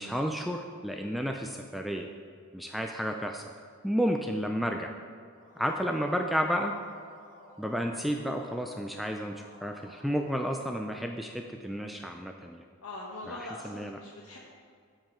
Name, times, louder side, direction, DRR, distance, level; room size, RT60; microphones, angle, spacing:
voice 1, 0.0-2.1 2.5-3.4 3.8-4.9 5.6-6.8 7.6-12.6 13.3-13.4 13.6-13.9, equal, ahead, 3 dB, 0.3 m, -31 dB
sound 1, 5.3-11.0, left 1 dB, 40° left, 1.3 m, -55 dB
voice 2, 12.8-14.4, left 2 dB, 80° left, -3 dB, 1.0 m, -42 dB
13.0 x 4.8 x 4.5 m, 2.2 s
head